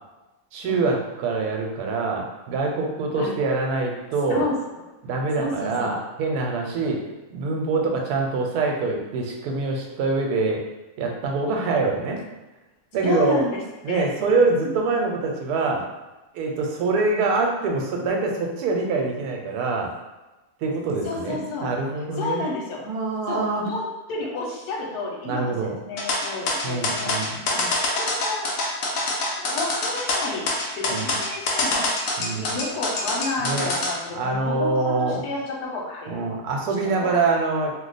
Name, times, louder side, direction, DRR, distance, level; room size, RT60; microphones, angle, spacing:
voice 1, 0.5-4.5 5.0-10.6 11.0-12.2 12.9-13.4 13.8-15.9 16.3-19.9 20.6-22.4 22.8-23.7 25.3-25.8 26.6-27.4 30.9-31.1 32.2-32.6 33.4-33.7 34.1-35.2 36.1-37.7, right 3 dB, 90° right, 1 dB, 1.1 m, -25 dB
voice 2, 5.4-5.9 13.0-13.6 13.9-14.0 21.0-21.7 22.2-22.8 23.3-28.5 29.4-30.5 30.7-31.9 32.3-36.2 36.8-37.1, left 3 dB, 90° left, -2 dB, 1.3 m, -31 dB
sound 1, 26.0-33.9, left 2 dB, 65° left, 1.0 m, -25 dB
2.8 x 2.0 x 3.9 m, 1.1 s
omnidirectional pair, 1.6 m